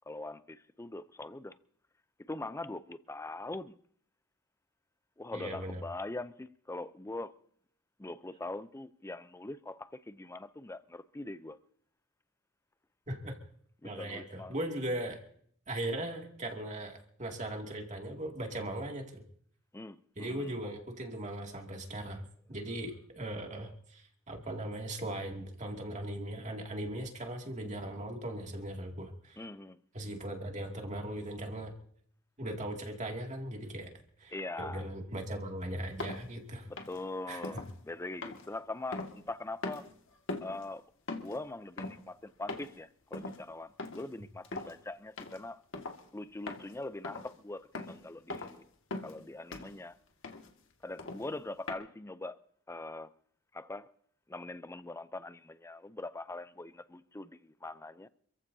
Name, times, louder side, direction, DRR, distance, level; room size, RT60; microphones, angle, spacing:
voice 1, 0.1-1.6 2.2-3.7 5.2-7.3 8.0-11.6 13.8-14.5 19.7-20.6 29.4-29.8 34.3-34.9 36.7-39.9 40.4-40.8 41.1-45.6 46.1-48.6 49.0-50.0 50.8-52.4 52.7-53.1 53.5-53.9 54.3-58.1, left 2 dB, 15° left, 0.5 m, -42 dB
voice 2, 5.3-5.8 13.1-13.3 13.8-15.2 15.7-19.2 20.2-22.2 22.5-29.4 29.9-31.7 32.4-33.9 34.2-36.7 37.3-37.4, right 1 dB, 35° right, 2.3 m, -38 dB
sound 1, 36.0-36.2 36.8-37.0 37.4-37.7 38.2-39.4 39.6-39.9 40.3-40.6 41.1-41.4 41.8-42.0 42.5-42.8 43.1-43.4 43.8-44.1 44.4-44.7 45.2-45.4 45.7-46.0 46.5-46.7 47.0-47.3 47.7-48.0 48.3-48.6 48.9-49.2 49.5-49.8 50.2-50.5 51.0-51.3 51.7-51.8, left 2 dB, 65° left, 1.8 m, -40 dB
27.5 x 15.0 x 2.7 m
head